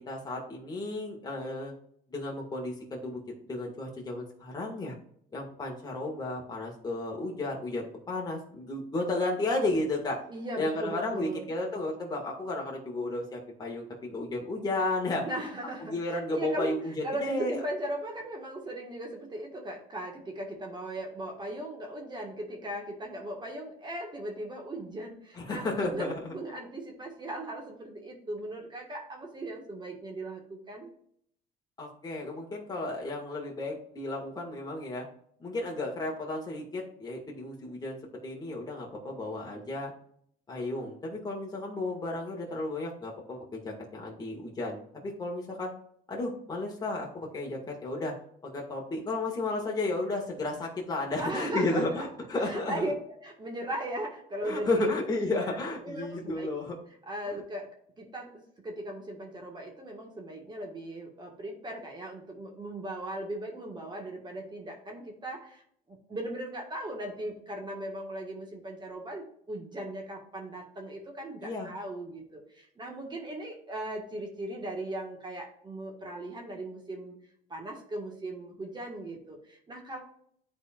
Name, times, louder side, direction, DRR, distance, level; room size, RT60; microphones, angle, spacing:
voice 1, 0.1-1.7 2.1-3.2 3.5-4.9 5.3-10.2 10.6-15.3 15.8-17.6 25.3-26.3 31.8-35.1 35.4-38.0 38.2-39.9 40.5-45.7 46.1-48.1 48.4-52.9 54.4-56.7 71.4-71.7, left 2 dB, 25° left, -2 dB, 1.7 m, -33 dB
voice 2, 10.3-11.4 15.2-16.8 17.0-30.9 51.2-52.0 52.4-56.5 57.1-57.7 58.0-65.6 65.9-77.1 77.5-80.0, right 1 dB, 25° right, 1 dB, 1.6 m, -38 dB
11.0 x 4.4 x 2.4 m, 0.65 s
cardioid pair, 110°, 17 cm